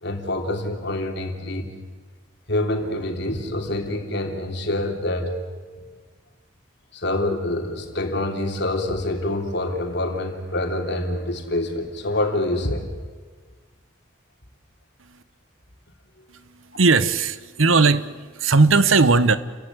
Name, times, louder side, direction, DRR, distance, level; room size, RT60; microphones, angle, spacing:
voice 1, 0.0-1.7 2.5-5.3 6.9-12.9 16.7-16.8, left 1 dB, 60° left, 3 dB, 3.3 m, -26 dB
voice 2, 16.3-19.4, right 4 dB, 85° right, 14 dB, 1.1 m, -18 dB
30.0 x 15.5 x 9.7 m, 1.5 s
head